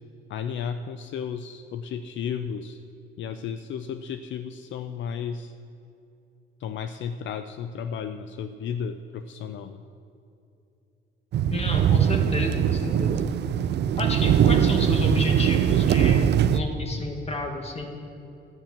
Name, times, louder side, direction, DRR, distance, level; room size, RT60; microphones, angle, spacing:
voice 1, 0.3-2.8 3.2-5.5 6.6-9.8, left 7 dB, 70° left, 10 dB, 0.5 m, -33 dB
sound 1, 11.3-16.6, right 9 dB, 60° right, 0.5 m, -21 dB
voice 2, 11.5-13.2 14.0-17.9, left 2 dB, 30° left, 2 dB, 2.0 m, -31 dB
12.5 x 7.3 x 8.8 m, 2.8 s
cardioid pair, 90°, 20 cm